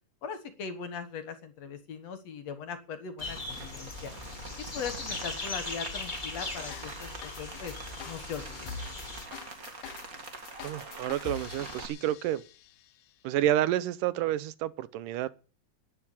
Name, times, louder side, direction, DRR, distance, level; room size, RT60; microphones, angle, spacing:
voice 1, 0.2-4.1 4.6-7.7 8.0-8.7, left 6 dB, 60° left, 2.4 m, -40 dB
sound 1, 3.2-9.3, left 3 dB, 30° left, 0.8 m, -39 dB
Rain, 3.2-11.9, right 3 dB, 30° right, 2.0 m, -45 dB
sound 2, 6.7-13.0, left 7 dB, 75° left, 2.3 m, -45 dB
voice 2, 10.6-12.4 13.2-15.3, right 13 dB, 80° right, 2.4 m, -29 dB
11.0 x 9.5 x 9.9 m
omnidirectional pair, 3.8 m